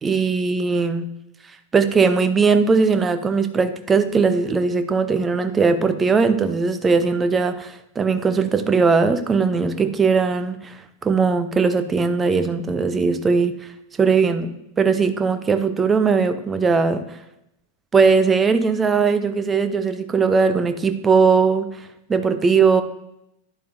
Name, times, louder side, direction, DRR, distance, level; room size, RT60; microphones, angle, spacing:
voice 1, 0.0-1.1 1.7-13.5 14.0-17.0 17.9-21.7 22.1-22.8, right 5 dB, 15° right, 11 dB, 0.7 m, -19 dB
11.0 x 11.0 x 2.7 m, 0.86 s
figure-of-eight pair, 90°, 0 cm